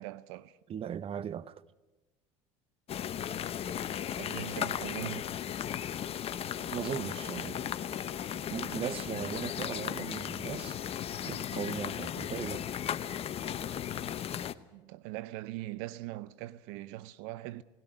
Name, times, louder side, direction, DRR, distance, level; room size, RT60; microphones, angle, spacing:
voice 1, 0.0-0.6 4.2-5.3 14.7-17.6, right 16 dB, 70° right, 0.7 m, -41 dB
voice 2, 0.7-1.6 6.7-7.8 8.5-10.8 11.3-12.7, right 9 dB, 40° right, 0.8 m, -38 dB
sound 1, 2.9-14.5, left 9 dB, 40° left, 0.9 m, -36 dB
19.0 x 17.0 x 9.9 m
hypercardioid pair, 85°, 15 cm